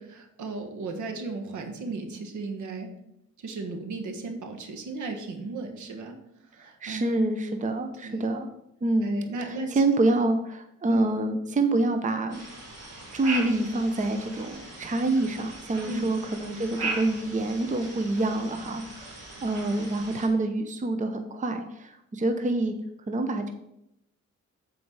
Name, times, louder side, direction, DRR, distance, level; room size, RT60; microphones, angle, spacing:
voice 1, 0.0-2.9 3.4-6.2 6.5-7.1 8.0-8.3 9.0-9.8 10.1-10.2 10.9-11.1 15.8-16.1, right 3 dB, 75° right, 5 dB, 1.4 m, -36 dB
voice 2, 6.8-8.5 8.8-12.4 13.1-19.1 19.4-22.7 23.1-23.5, right 2 dB, 25° right, 7 dB, 0.7 m, -27 dB
sound 1, 12.3-20.3, right 3 dB, 55° right, 2.7 m, -38 dB
7.8 x 4.7 x 4.7 m, 0.81 s
cardioid pair, 90°, 30 cm